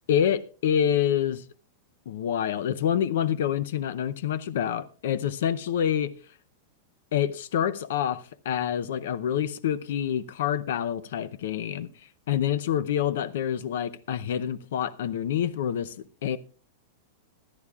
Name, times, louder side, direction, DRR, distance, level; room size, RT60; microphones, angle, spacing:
voice 1, 0.1-1.4 2.1-6.1 7.1-11.9 12.3-15.9 16.2-16.4, left 9 dB, 70° left, 0.6 m, -27 dB
26.0 x 9.8 x 2.4 m
supercardioid pair, 170°, 0 cm